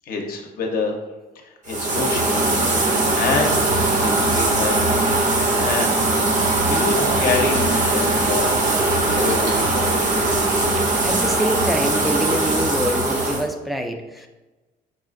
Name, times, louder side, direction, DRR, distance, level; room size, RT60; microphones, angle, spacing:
voice 1, 0.1-1.0 1.4-3.7 4.0-6.0 6.7-8.7 9.1-9.9, left 4 dB, 60° left, 2 dB, 0.7 m, -27 dB
sound 1, 1.7-13.4, right 2 dB, 50° right, 0.7 m, -20 dB
sound 2, 6.5-11.6, right 1 dB, 75° right, 1.1 m, -37 dB
voice 2, 10.8-14.3, equal, ahead, 3 dB, 0.4 m, -26 dB
5.5 x 2.4 x 2.5 m, 1.1 s
cardioid pair, 110°, 17 cm